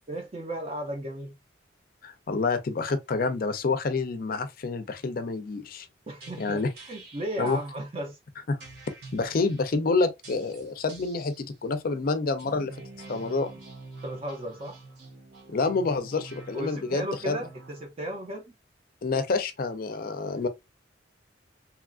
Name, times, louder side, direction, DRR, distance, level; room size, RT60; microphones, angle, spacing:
voice 1, 0.1-1.4 6.1-8.2 14.0-14.8 16.5-18.5, right 1 dB, 30° right, 0.4 m, -35 dB
voice 2, 2.0-5.9 6.4-6.7 7.4-7.6 8.5-8.6 9.1-12.8 13.1-13.5 15.5-17.4 19.0-20.5, left 3 dB, 50° left, 0.4 m, -28 dB
sound 1, 6.2-7.6 8.6-9.7 10.2-11.4 12.3-17.9, right 2 dB, 60° right, 0.8 m, -46 dB
2.9 x 2.3 x 2.4 m
head